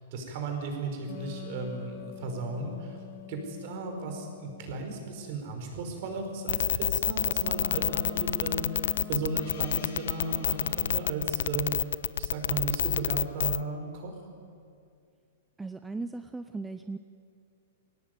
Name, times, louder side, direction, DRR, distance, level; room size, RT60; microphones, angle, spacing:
voice 1, 0.1-3.0 3.3-11.8 12.2-14.1, right 3 dB, 45° right, 3 dB, 5.2 m, -35 dB
sound 1, 1.1-5.1 7.4-11.1, left 8 dB, 30° left, 1.5 m, -44 dB
sound 2, 6.5-13.6, left 9 dB, 75° left, 0.6 m, -27 dB
Gong, 9.3-13.7, left 6 dB, 55° left, 3.9 m, -54 dB
voice 2, 15.6-17.0, right 3 dB, 5° right, 9 dB, 0.6 m, -37 dB
22.0 x 17.5 x 9.5 m, 2.3 s
hypercardioid pair, 160°, 0 cm